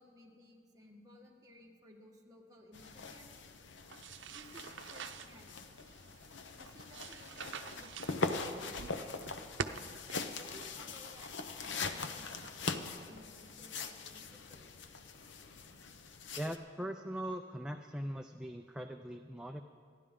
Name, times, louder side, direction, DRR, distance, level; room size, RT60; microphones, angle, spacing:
voice 1, 0.0-3.4 4.3-5.6 6.6-9.2 10.1-14.8, equal, 20° right, -2 dB, 1.8 m, -58 dB
sound 1, 2.7-16.6, left 4 dB, 85° left, 0.8 m, -42 dB
sound 2, 3.9-11.4, right 5 dB, 85° right, 0.7 m, -47 dB
voice 2, 16.4-19.6, equal, 5° right, 4 dB, 0.4 m, -41 dB
28.0 x 11.0 x 3.8 m, 2.1 s
head